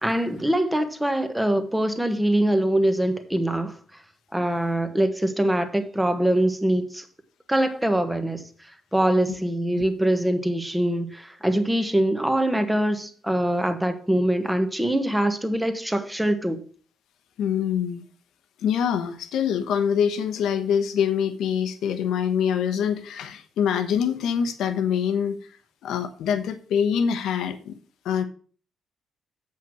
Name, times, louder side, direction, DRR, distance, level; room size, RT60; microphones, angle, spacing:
voice 1, 0.0-3.8 4.3-7.0 7.5-8.5 8.9-16.6, right 1 dB, 5° right, 8 dB, 1.3 m, -23 dB
voice 2, 17.4-18.0 18.6-25.4 25.8-27.7 28.0-28.2, left 8 dB, 90° left, 9 dB, 1.1 m, -24 dB
7.8 x 5.8 x 6.2 m, 0.42 s
cardioid pair, 105°, 0 cm